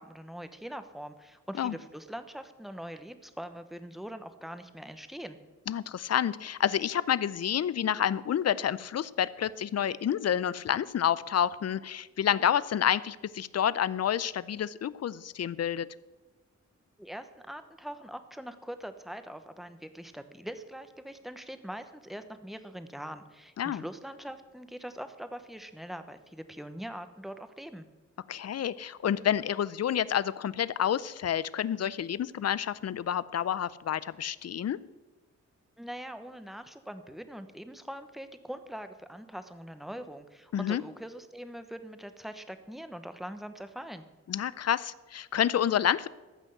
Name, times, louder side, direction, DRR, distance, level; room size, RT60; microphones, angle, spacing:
voice 1, 0.0-5.4 17.0-27.8 35.8-44.1, equal, ahead, 9 dB, 0.9 m, -42 dB
voice 2, 5.7-15.9 23.6-23.8 28.3-34.8 40.5-40.8 44.3-46.1, left 9 dB, 60° left, 18 dB, 0.5 m, -29 dB
14.5 x 6.2 x 7.8 m, 1.2 s
wide cardioid pair, 110°, 29 cm